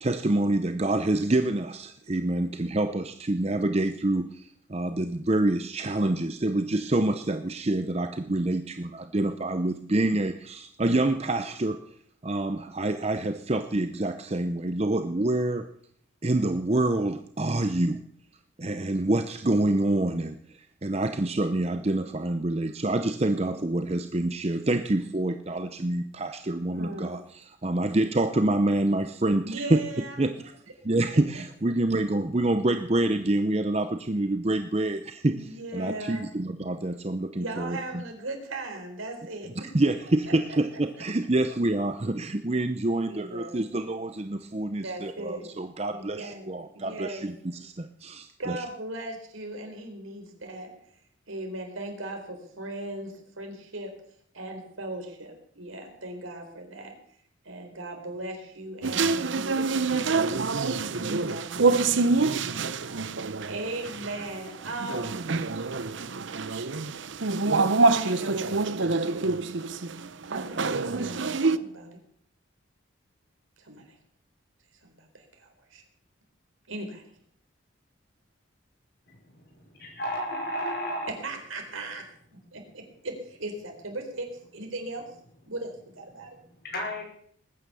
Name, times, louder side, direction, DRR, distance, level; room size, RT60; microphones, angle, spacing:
voice 1, 0.0-11.8 12.2-15.7 16.2-18.0 18.6-30.5 30.8-38.0 39.7-48.6, right 2 dB, 30° right, 9 dB, 0.7 m, -27 dB
voice 2, 26.7-27.2 29.4-30.2 35.3-36.3 37.4-39.5 43.1-43.6 44.8-45.5 45.9-47.3 48.4-50.7 51.3-53.9 54.3-56.9 57.4-60.3 60.8-62.8 63.4-65.2 67.8-68.6 70.3-72.0 73.6-73.8 74.8-75.8 76.7-77.0 81.2-82.0 82.5-85.1 85.5-86.3, right 2 dB, 85° right, 3 dB, 4.2 m, -38 dB
sound 1, 58.8-71.6, right 3 dB, 65° right, 0.8 m, -26 dB
voice 3, 79.8-81.1 86.6-87.0, equal, 50° left, 1 dB, 5.4 m, -32 dB
20.0 x 9.7 x 6.9 m, 0.63 s
head